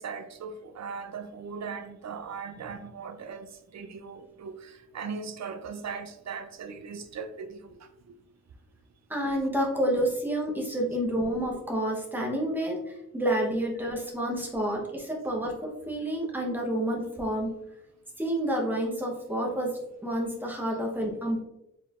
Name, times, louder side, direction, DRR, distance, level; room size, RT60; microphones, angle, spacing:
voice 1, 0.0-3.5 3.7-7.8, right 5 dB, 55° right, 0.5 m, -39 dB
voice 2, 9.1-17.6 18.2-21.4, right 1 dB, 5° right, 0.9 m, -29 dB
4.5 x 3.8 x 2.4 m
wide cardioid pair, 155°, 33 cm